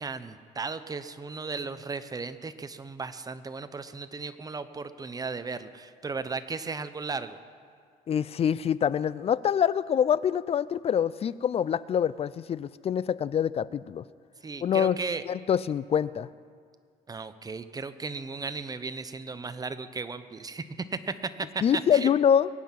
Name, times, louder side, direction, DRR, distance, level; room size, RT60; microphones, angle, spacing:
voice 1, 0.0-7.4 14.4-15.3 17.1-21.6 21.9-22.1, right 4 dB, 20° right, 12 dB, 0.8 m, -35 dB
voice 2, 8.1-14.0 14.6-15.0 15.3-16.3 21.6-22.5, left 8 dB, 35° left, 18 dB, 0.4 m, -25 dB
22.5 x 9.4 x 5.9 m, 2.1 s
cardioid pair, 110°, 17 cm